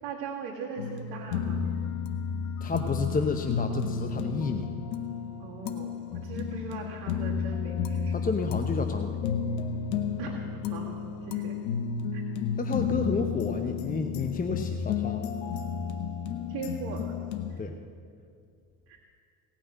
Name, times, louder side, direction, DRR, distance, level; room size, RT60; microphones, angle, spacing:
voice 1, 0.0-1.6 5.4-8.2 10.2-11.6 12.1-12.2 16.5-17.2 17.5-17.6 18.9-19.0, right 5 dB, 60° right, -4 dB, 2.0 m, -40 dB
sound 1, 0.8-17.6, left 6 dB, 80° left, 1.0 m, -32 dB
voice 2, 2.6-4.7 8.1-9.2 12.6-15.3 17.6-17.8, left 4 dB, 20° left, 6 dB, 0.8 m, -31 dB
17.5 x 6.1 x 8.5 m, 2.3 s
hypercardioid pair, 65°, 44 cm